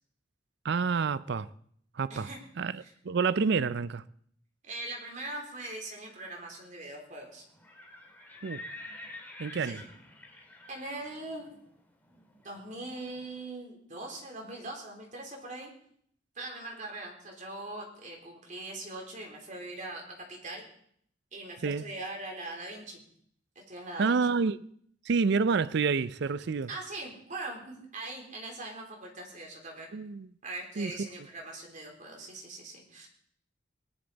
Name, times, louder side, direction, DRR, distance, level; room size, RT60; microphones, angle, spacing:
voice 1, 0.6-1.5 1.9-2.3 2.6-4.0 8.4-8.7 9.4-9.8 21.6-21.8 24.0-24.6 25.1-26.7 29.9-30.3 30.8-30.9, right 5 dB, 65° right, 0.5 m, -28 dB
voice 2, 4.6-7.4 9.6-9.8 10.7-11.5 12.4-15.7 16.4-20.6 21.3-23.0 23.6-24.2 26.4-29.9 30.4-33.1, right 2 dB, 40° right, 3.5 m, -41 dB
Livestock farm animals working animals, 7.5-13.3, left 2 dB, 10° left, 1.9 m, -48 dB
19.0 x 11.5 x 4.1 m
head